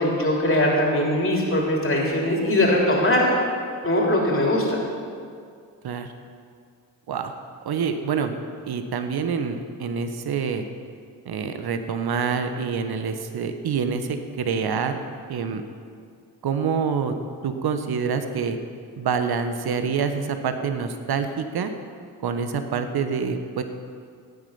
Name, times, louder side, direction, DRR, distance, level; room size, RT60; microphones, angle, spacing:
voice 1, 0.0-3.4 3.8-4.9, left 1 dB, 25° left, -2 dB, 3.4 m, -21 dB
voice 2, 7.6-8.3 8.6-10.6 11.2-15.0 15.3-15.6 16.4-17.1 17.4-18.6 19.0-21.7 22.2-23.6, right 6 dB, 50° right, 8 dB, 1.3 m, -26 dB
14.5 x 9.1 x 5.6 m, 2.2 s
hypercardioid pair, 40°, 50 cm